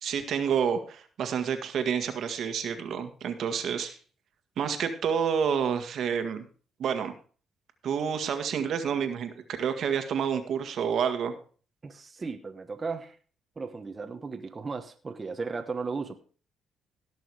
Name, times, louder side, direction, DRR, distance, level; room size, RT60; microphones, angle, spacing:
voice 1, 0.0-4.0 4.6-6.4 6.8-7.1 7.8-11.3, right 7 dB, 65° right, 7 dB, 1.7 m, -29 dB
voice 2, 11.8-13.2 13.6-16.2, right 4 dB, 30° right, 5 dB, 1.2 m, -35 dB
17.5 x 6.2 x 4.9 m, 0.41 s
cardioid pair, 90°, 0 cm